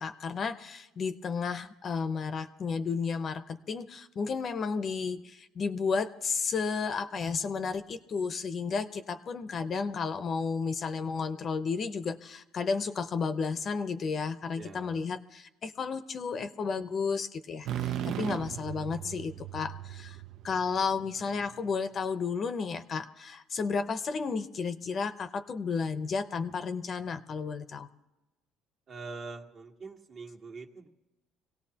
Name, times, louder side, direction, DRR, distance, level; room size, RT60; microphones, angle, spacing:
voice 1, 0.0-20.2 20.4-27.9, left 5 dB, 40° left, 10 dB, 0.7 m, -32 dB
voice 2, 14.5-15.1 28.9-30.9, right 4 dB, 45° right, 1 dB, 1.6 m, -44 dB
sound 1, 17.6-21.4, right 10 dB, 65° right, 0.5 m, -37 dB
25.0 x 17.5 x 2.9 m, 1.0 s
cardioid pair, 115°, 0 cm